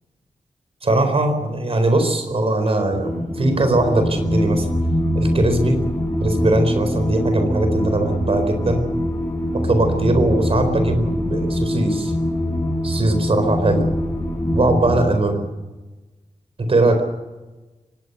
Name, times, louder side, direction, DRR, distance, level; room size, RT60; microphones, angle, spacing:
voice 1, 0.8-4.7 5.1-5.8 6.2-8.8 9.6-12.1 12.8-13.9 14.5-15.5 16.6-17.0, right 2 dB, 50° right, 7 dB, 4.4 m, -20 dB
sound 1, 2.9-15.1, left 1 dB, 15° left, 6.0 m, -23 dB
24.5 x 19.5 x 6.9 m, 1.2 s
wide cardioid pair, 115°, 13 cm